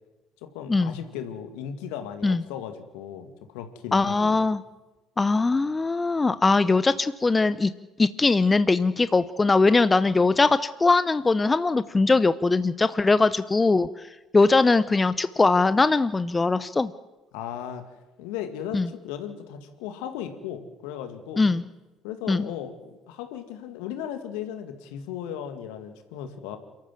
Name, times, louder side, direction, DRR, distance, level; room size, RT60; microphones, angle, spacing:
voice 1, 0.4-4.4 17.3-17.8 18.2-21.5 22.0-26.6, left 9 dB, 70° left, 8 dB, 2.2 m, -36 dB
voice 2, 3.9-4.6 5.2-7.7 8.0-13.9 14.3-16.9 18.7-18.9 21.4-21.6 22.3-22.5, left 3 dB, 20° left, 15 dB, 0.8 m, -21 dB
28.5 x 13.5 x 7.6 m, 1.1 s
hypercardioid pair, 55°, 0 cm